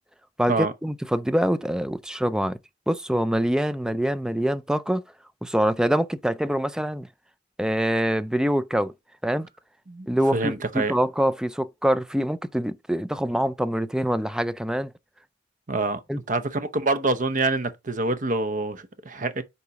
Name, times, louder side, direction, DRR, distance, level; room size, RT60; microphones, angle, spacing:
voice 1, 0.4-2.6 2.9-5.0 5.4-7.1 7.6-8.9 9.2-9.5 10.1-14.9 16.1-16.2, equal, 5° right, 0.4 m, -25 dB
voice 2, 10.3-10.9 15.7-16.0 16.3-19.4, right 3 dB, 45° right, 0.8 m, -26 dB
6.9 x 4.2 x 4.7 m
head